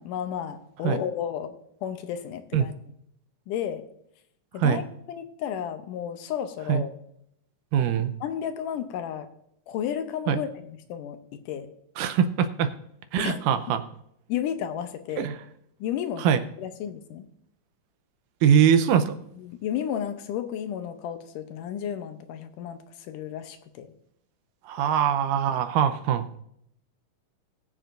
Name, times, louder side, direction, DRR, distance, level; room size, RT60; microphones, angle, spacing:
voice 1, 0.0-1.6 1.8-2.7 3.5-3.8 4.5-4.8 5.1-6.9 8.2-9.3 9.7-11.7 13.2-13.4 14.3-15.3 15.8-17.3 19.4-23.9, left 9 dB, 80° left, 8 dB, 2.3 m, -32 dB
voice 2, 7.7-8.1 10.3-10.4 12.0-12.7 13.1-13.8 15.2-15.4 16.2-16.4 18.4-19.1 24.7-26.2, right 8 dB, 85° right, 9 dB, 2.3 m, -22 dB
21.5 x 7.5 x 2.6 m, 0.74 s
omnidirectional pair, 3.8 m